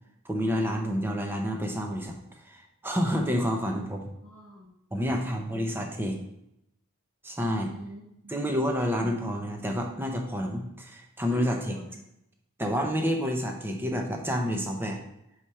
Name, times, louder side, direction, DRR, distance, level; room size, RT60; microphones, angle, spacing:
voice 1, 0.2-2.2 2.4-4.1 4.9-6.2 7.2-7.7 8.3-11.8 12.6-15.0, equal, 10° right, 2 dB, 0.7 m, -29 dB
voice 2, 4.2-5.5 7.6-8.3 11.3-12.0, right 1 dB, 60° right, -3 dB, 1.2 m, -48 dB
4.9 x 4.4 x 5.6 m, 0.81 s
head